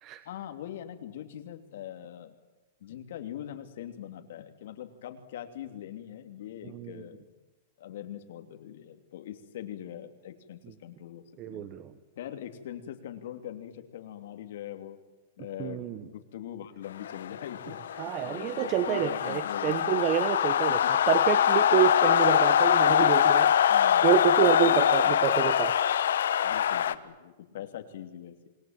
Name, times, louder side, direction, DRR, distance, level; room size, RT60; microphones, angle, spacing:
voice 1, 0.2-2.3 2.8-7.2 7.8-11.7 12.2-15.0 15.4-20.0 20.7-20.9 23.7-24.1 24.6-25.2 26.4-28.5, left 11 dB, 60° left, 7 dB, 2.9 m, -42 dB
voice 2, 11.4-11.9 15.6-16.0 18.0-20.8 21.1-23.5 24.0-25.9, right 11 dB, 25° right, 12 dB, 1.0 m, -27 dB
sound 1, 17.0-26.9, left 9 dB, 85° left, 1.2 m, -24 dB
27.0 x 20.5 x 9.0 m, 1.1 s
supercardioid pair, 165°, 0 cm